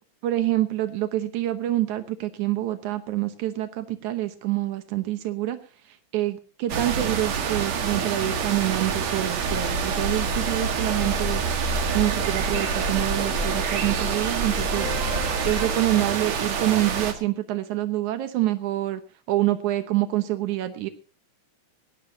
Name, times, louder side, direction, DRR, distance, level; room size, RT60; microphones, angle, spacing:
voice 1, 0.2-5.6 5.9-11.4 11.9-14.9 15.5-19.0 19.3-20.9, right 15 dB, 80° right, 10 dB, 2.5 m, -26 dB
sound 1, 6.7-17.1, right 6 dB, 65° right, 3.0 m, -27 dB
sound 2, 9.3-15.7, equal, 25° right, 5.9 m, -32 dB
20.0 x 16.5 x 2.8 m, 0.32 s
omnidirectional pair, 3.4 m